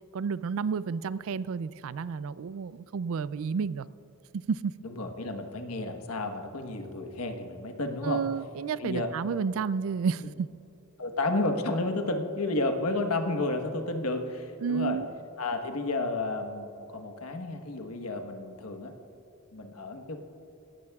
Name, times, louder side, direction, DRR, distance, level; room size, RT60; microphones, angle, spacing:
voice 1, 0.1-3.9 4.3-4.7 8.0-10.3 14.6-15.1, right 6 dB, 70° right, 18 dB, 0.4 m, -31 dB
voice 2, 4.8-8.2 8.8-9.1 11.0-15.0 15.4-18.9 19.5-20.2, left 2 dB, 85° left, 5 dB, 1.2 m, -31 dB
18.0 x 14.0 x 2.4 m, 2.9 s
head